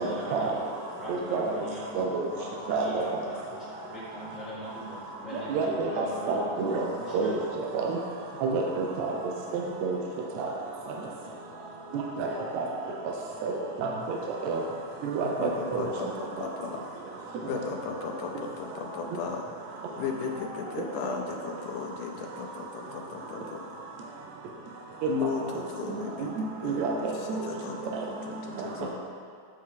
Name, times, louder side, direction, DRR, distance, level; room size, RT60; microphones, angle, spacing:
voice 1, 0.0-6.5 6.8-7.3, equal, ahead, -11 dB, 0.4 m, -41 dB
voice 2, 2.7-3.0 5.5-6.9 7.1-7.3 7.8-8.0 8.4-9.1 9.5-10.0 10.4-10.5 12.2-12.3 12.5-12.7 13.4-13.5 13.8-14.2 14.5-14.6 15.0-15.8 26.6-27.1, right 4 dB, 75° right, 0 dB, 1.7 m, -28 dB
voice 3, 15.2-16.8 17.1-23.6 25.1-26.8 27.1-28.9, left 5 dB, 80° left, 0 dB, 2.0 m, -36 dB
8.2 x 6.4 x 3.7 m, 2.3 s
omnidirectional pair, 3.8 m